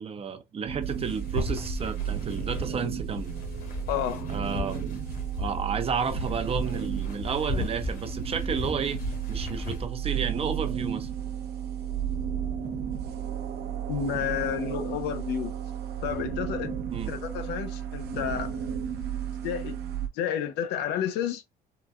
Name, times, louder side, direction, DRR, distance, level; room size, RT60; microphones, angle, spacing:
voice 1, 0.0-3.4 4.3-5.0 5.4-9.0 9.3-11.1 16.9-17.1, right 6 dB, 35° right, 0.7 m, -32 dB
sound 1, 0.7-20.1, right 8 dB, 70° right, 0.7 m, -33 dB
sound 2, 0.8-9.9, left 3 dB, 55° left, 1.3 m, -36 dB
voice 2, 3.9-4.3 13.9-15.5 16.0-18.6 19.4-19.8 20.1-21.4, left 9 dB, 90° left, 0.7 m, -31 dB
3.9 x 2.2 x 2.3 m
cardioid pair, 110°, 17 cm